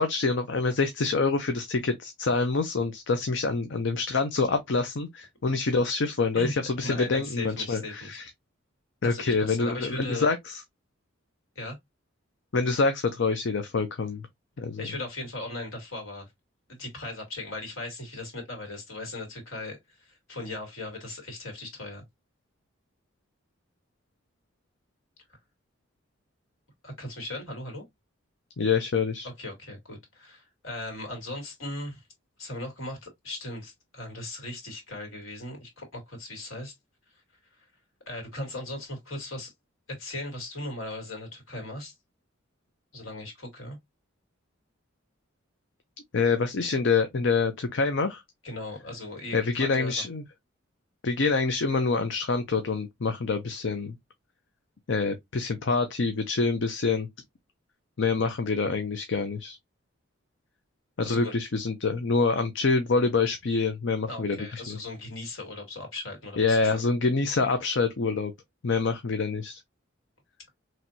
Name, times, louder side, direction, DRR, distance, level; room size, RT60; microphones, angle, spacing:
voice 1, 0.0-8.3 9.0-10.6 12.5-14.2 14.6-14.9 28.6-29.3 46.1-48.2 49.3-50.2 51.0-54.0 54.9-57.1 58.0-59.6 61.0-64.8 66.4-68.3 68.6-69.6, left 4 dB, 65° left, 0.6 m, -26 dB
voice 2, 6.8-8.2 9.0-10.3 11.6-11.8 14.8-16.3 16.7-22.0 26.8-27.8 29.2-32.0 32.4-36.7 38.1-39.5 39.9-41.9 42.9-43.8 48.4-50.0 61.0-61.3 64.1-66.8, left 2 dB, 90° left, 2.3 m, -38 dB
4.4 x 3.1 x 2.7 m
head